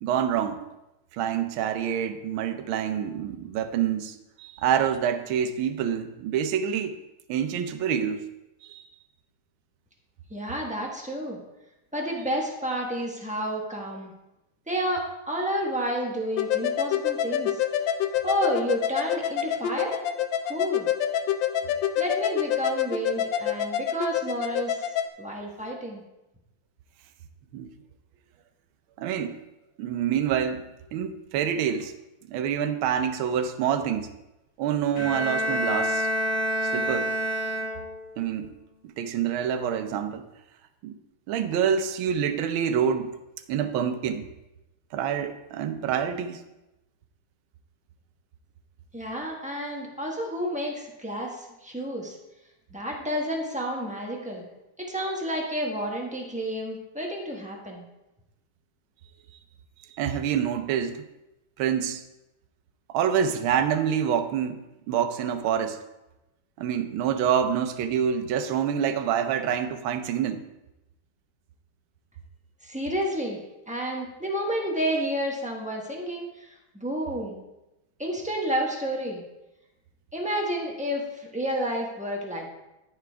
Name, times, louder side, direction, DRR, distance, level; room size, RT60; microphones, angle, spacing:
voice 1, 0.0-0.6 1.1-7.0 7.3-8.2 8.6-8.8 27.5-27.7 29.0-29.4 29.8-31.9 32.3-34.1 34.6-36.1 36.6-37.1 38.2-38.5 38.8-40.3 40.8-41.0 41.3-43.2 43.5-44.3 44.9-46.4 59.9-61.0 61.6-62.0 62.9-65.8 66.6-70.5, right 8 dB, 75° right, 8 dB, 1.4 m, -27 dB
voice 2, 10.3-11.4 11.9-14.1 14.7-17.6 18.2-20.0 20.5-20.9 22.0-26.0 48.9-52.2 52.7-54.5 54.8-57.8 72.6-73.4 73.7-77.4 78.0-79.2 80.1-82.5, equal, 10° right, -1 dB, 0.4 m, -30 dB
sound 1, 16.4-25.1, left 9 dB, 75° left, 1.2 m, -27 dB
Bowed string instrument, 34.9-38.2, equal, 40° left, 1.8 m, -27 dB
14.0 x 4.9 x 3.4 m, 0.96 s
omnidirectional pair, 2.4 m